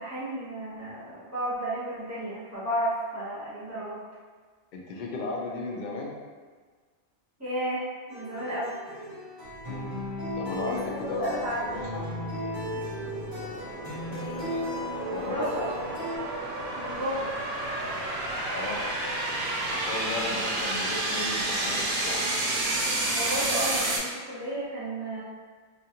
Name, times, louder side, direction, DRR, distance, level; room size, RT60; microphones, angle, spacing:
voice 1, 0.0-4.0 7.4-7.8 8.1-8.8 10.6-11.6 15.2-15.8 16.7-17.3 23.1-25.2, right 1 dB, 15° right, -12 dB, 0.9 m, -32 dB
voice 2, 4.7-6.2 9.7-9.9 10.4-12.1 15.1-15.7 18.5-18.8 19.7-22.2, left 3 dB, 60° left, -2 dB, 0.5 m, -35 dB
sound 1, 8.1-16.2, left 1 dB, 45° right, 1.0 m, -36 dB
sound 2, 9.4-24.0, right 2 dB, 65° right, 0.8 m, -31 dB
2.4 x 2.3 x 2.8 m, 1.5 s
omnidirectional pair, 1.2 m